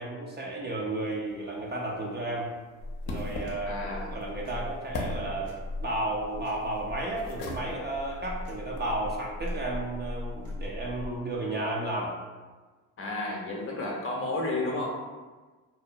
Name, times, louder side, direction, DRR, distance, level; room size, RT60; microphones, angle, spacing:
voice 1, 0.0-2.5 3.1-5.5 5.8-12.1 13.7-13.9, right 2 dB, 25° right, -2 dB, 0.5 m, -33 dB
sound 1, 1.3-9.0, left 1 dB, 75° left, 0.6 m, -42 dB
sound 2, 2.8-11.2, left 1 dB, 65° right, 0.8 m, -39 dB
voice 2, 3.6-4.1 13.0-14.9, left 2 dB, 35° left, -1 dB, 0.7 m, -32 dB
2.8 x 2.0 x 2.6 m, 1.3 s
supercardioid pair, 70°, 38 cm